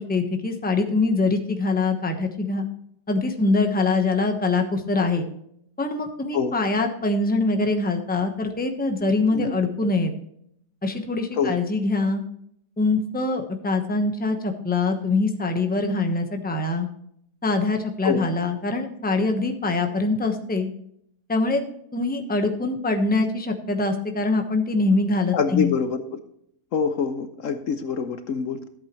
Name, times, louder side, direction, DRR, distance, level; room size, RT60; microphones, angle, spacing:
voice 1, 0.0-2.6 3.1-5.3 5.8-10.1 10.8-12.2 12.8-16.9 17.4-20.7 21.3-21.6 21.9-25.7, left 3 dB, 5° left, 4 dB, 0.9 m, -23 dB
voice 2, 25.3-26.2 26.7-28.7, left 6 dB, 65° left, 9 dB, 1.1 m, -25 dB
14.0 x 8.3 x 3.1 m, 0.70 s
omnidirectional pair, 1.6 m